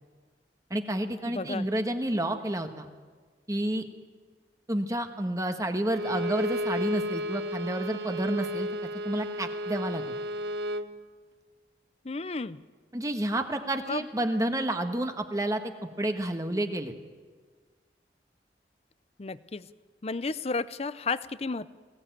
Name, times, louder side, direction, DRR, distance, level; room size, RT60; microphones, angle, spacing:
voice 1, 0.7-2.9 3.5-3.8 4.7-8.7 9.0-10.1 12.9-15.7 16.0-16.9, right 1 dB, 20° right, 6 dB, 1.4 m, -30 dB
voice 2, 1.3-1.7 12.0-12.6 13.9-14.0 19.2-19.7 20.0-21.7, left 4 dB, 35° left, 16 dB, 0.6 m, -32 dB
Bowed string instrument, 5.9-10.9, equal, 75° right, 1.0 m, -33 dB
21.5 x 17.0 x 9.2 m, 1.5 s
head